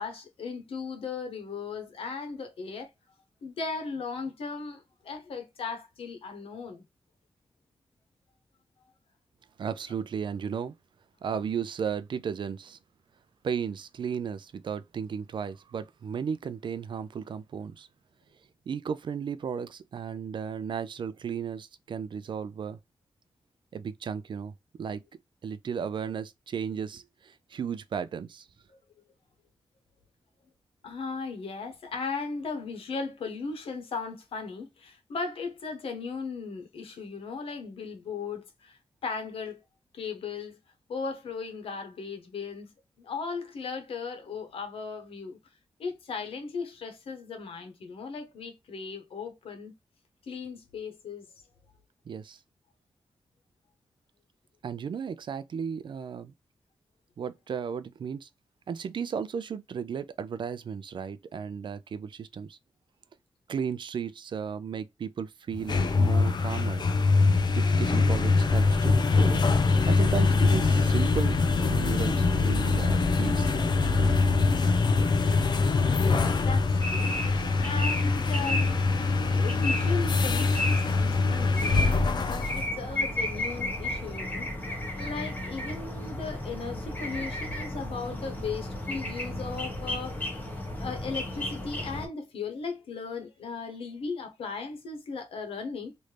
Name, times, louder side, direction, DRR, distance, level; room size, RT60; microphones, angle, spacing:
voice 1, 0.0-2.9 3.4-6.8 28.7-28.8 30.8-39.6 39.9-40.6 40.9-42.7 43.0-45.4 45.8-49.7 50.2-51.3 75.4-77.2 77.6-78.7 79.3-90.3 90.8-95.9, left 4 dB, 90° left, 0.9 m, -37 dB
voice 2, 9.6-10.7 11.2-12.8 13.4-17.9 18.7-22.8 23.7-24.5 24.8-25.0 25.4-28.5 52.1-52.4 54.6-56.3 57.2-58.3 58.7-62.6 63.5-66.8 67.5-71.4 71.7-73.7 74.0-74.2, right 7 dB, 60° right, 0.4 m, -34 dB
sound 1, 65.5-82.7, left 3 dB, 50° left, 0.6 m, -24 dB
sound 2, 76.8-92.0, left 1 dB, 20° left, 1.1 m, -34 dB
3.2 x 2.6 x 3.2 m
wide cardioid pair, 115°, 9 cm